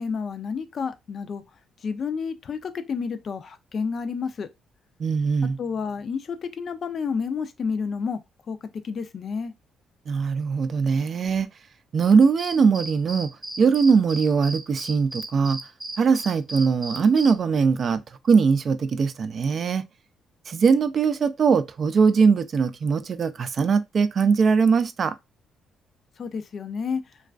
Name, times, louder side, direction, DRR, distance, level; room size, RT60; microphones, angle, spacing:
voice 1, 0.0-1.4 1.8-4.5 5.6-8.2 8.5-8.6 8.8-9.5 26.2-27.0, left 5 dB, 50° left, 0.4 m, -30 dB
voice 2, 5.0-5.6 10.1-11.5 11.9-13.3 13.6-15.6 16.0-19.8 20.5-25.1, right 5 dB, 50° right, 0.3 m, -21 dB
sound 1, 12.4-17.3, right 1 dB, 15° right, 0.8 m, -36 dB
2.3 x 2.3 x 2.3 m
cardioid pair, 90°, 0 cm